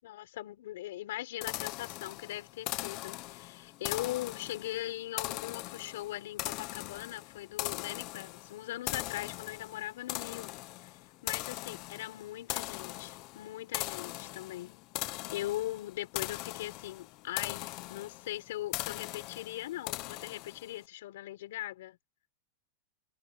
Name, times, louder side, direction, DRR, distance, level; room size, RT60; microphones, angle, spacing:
voice 1, 0.0-10.5 11.2-14.8 15.3-22.0, left 15 dB, 70° left, 6.0 m, -40 dB
sound 1, 1.4-20.8, left 19 dB, 35° left, 1.0 m, -40 dB
supercardioid pair, 170°, 0 cm